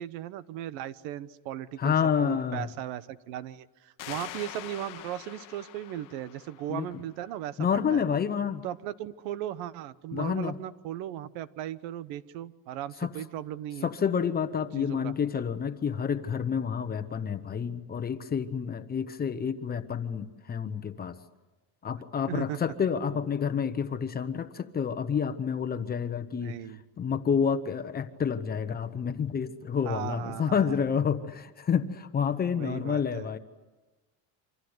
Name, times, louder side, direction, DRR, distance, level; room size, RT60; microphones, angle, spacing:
voice 1, 0.0-1.9 2.2-8.0 8.6-13.9 14.8-15.1 22.3-22.6 26.4-26.8 29.8-30.8 32.5-33.3, right 12 dB, 85° right, 15 dB, 1.3 m, -37 dB
voice 2, 1.8-2.7 6.7-6.9 7.6-8.6 10.1-10.6 13.0-13.1 13.8-21.2 21.8-26.6 27.0-33.4, left 7 dB, 20° left, 9 dB, 1.0 m, -29 dB
sound 1, 4.0-7.4, left 14 dB, 40° left, 1.1 m, -44 dB
28.5 x 26.0 x 8.1 m, 1.1 s
cardioid pair, 175°, 48 cm